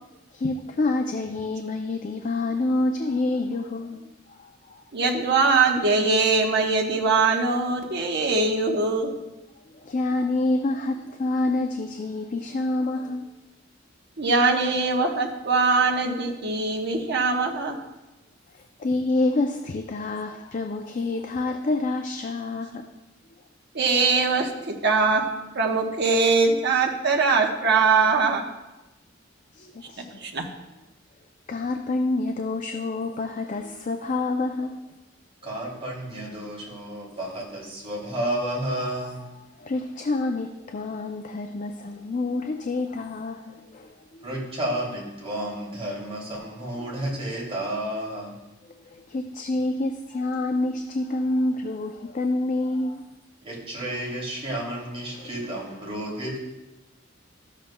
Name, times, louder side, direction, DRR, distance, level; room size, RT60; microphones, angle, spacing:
voice 1, 0.3-4.8 9.7-13.3 18.5-22.9 29.5-30.2 31.5-34.8 37.1-37.2 39.6-44.3 46.8-46.9 48.8-53.0 55.1-55.3, left 2 dB, 40° left, 4 dB, 0.4 m, -28 dB
voice 2, 4.9-9.1 14.2-17.8 23.7-25.3 25.5-28.4 30.0-30.5, right 4 dB, 60° right, 1 dB, 1.0 m, -22 dB
voice 3, 35.4-39.2 44.2-48.3 53.4-56.4, right 1 dB, 30° right, -5 dB, 2.7 m, -31 dB
13.0 x 7.2 x 2.2 m, 1.0 s
head